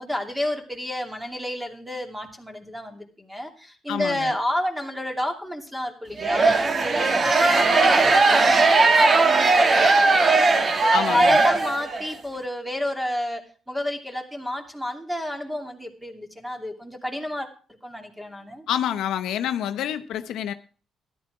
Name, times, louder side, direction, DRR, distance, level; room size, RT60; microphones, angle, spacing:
voice 1, 0.0-13.4 13.7-17.5 17.8-18.7, left 1 dB, 5° right, 3 dB, 2.7 m, -30 dB
voice 2, 3.9-4.3 10.9-11.4 18.7-20.5, left 10 dB, 85° left, 9 dB, 0.8 m, -27 dB
sound 1, 6.2-12.1, right 3 dB, 40° right, 1.5 m, -18 dB
13.0 x 11.5 x 4.8 m, 0.39 s
cardioid pair, 90°, 0 cm